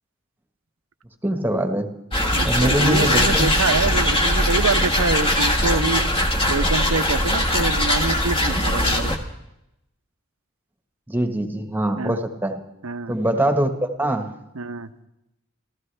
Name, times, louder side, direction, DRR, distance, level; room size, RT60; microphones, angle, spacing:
voice 1, 1.2-1.9 2.4-3.5 11.1-12.6 13.1-14.3, right 1 dB, 10° right, 6 dB, 1.4 m, -23 dB
sound 1, 2.1-9.2, left 1 dB, 25° left, 1.6 m, -20 dB
voice 2, 2.3-6.0 6.5-9.1 12.0-12.2 12.8-13.2 14.5-14.9, right 4 dB, 85° right, 10 dB, 0.9 m, -26 dB
28.0 x 14.0 x 3.4 m, 0.86 s
head